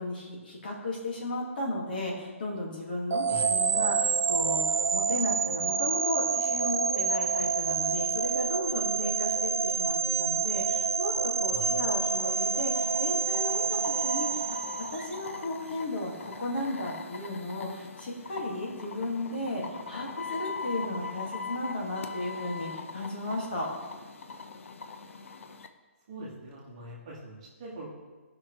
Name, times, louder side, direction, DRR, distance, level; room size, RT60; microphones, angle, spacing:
voice 1, 0.0-14.6 14.9-23.7, left 1 dB, 40° left, -2 dB, 1.9 m, -35 dB
sound 1, 3.1-15.2, right 5 dB, 85° right, 0.5 m, -28 dB
voice 2, 11.5-11.9 26.1-27.9, right 2 dB, 25° right, -5 dB, 1.6 m, -43 dB
sound 2, 12.1-25.7, left 4 dB, 70° left, 0.8 m, -41 dB
16.0 x 5.8 x 3.1 m, 1.3 s
hypercardioid pair, 180°, 7 cm